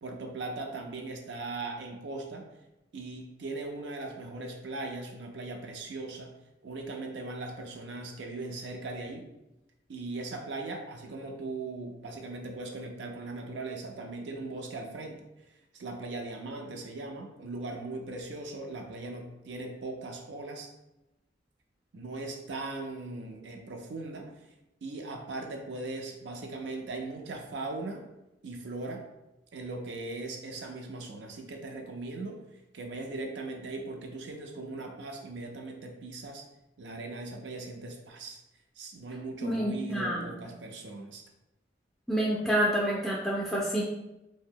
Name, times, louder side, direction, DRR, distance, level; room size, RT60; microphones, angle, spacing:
voice 1, 0.0-2.5 2.9-6.3 6.6-9.3 9.9-15.2 15.7-20.7 21.9-24.3 24.8-28.0 28.4-29.0 29.5-32.4 32.7-36.4 36.8-38.4 38.8-41.2, right 2 dB, 75° right, 3 dB, 0.5 m, -39 dB
voice 2, 39.4-40.3 42.1-43.8, equal, ahead, -6 dB, 0.3 m, -28 dB
2.7 x 2.1 x 3.6 m, 0.94 s
head